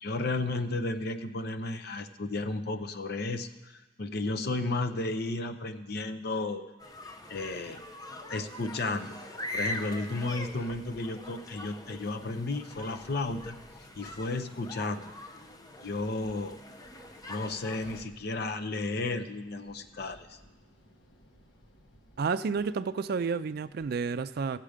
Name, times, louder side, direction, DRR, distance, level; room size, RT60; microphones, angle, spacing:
voice 1, 0.0-6.7 7.3-7.8 8.3-9.2 9.5-13.6 14.0-15.1 15.8-16.6 17.3-20.4, left 2 dB, 60° left, 8 dB, 0.7 m, -33 dB
sound 1, 6.8-18.0, left 1 dB, 20° left, 0.7 m, -43 dB
sound 2, 9.5-24.0, equal, 80° left, 1.3 m, -59 dB
voice 2, 22.2-24.6, right 5 dB, 55° right, 14 dB, 0.4 m, -30 dB
16.0 x 7.4 x 5.0 m, 1.2 s
head